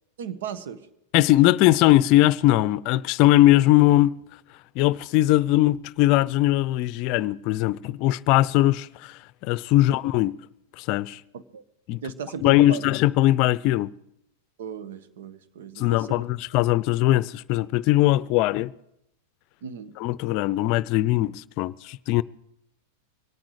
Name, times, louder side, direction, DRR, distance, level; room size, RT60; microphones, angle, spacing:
voice 1, 0.2-0.9 9.8-10.0 11.3-11.6 11.9-12.9 14.6-16.3 19.6-19.9, right 7 dB, 75° right, 1.3 m, -36 dB
voice 2, 1.1-4.2 4.8-10.4 10.8-11.2 11.9-12.0 12.4-13.9 15.8-18.7 20.0-22.2, left 16 dB, 50° left, 0.5 m, -20 dB
24.5 x 9.0 x 4.9 m
hypercardioid pair, 115°, 0 cm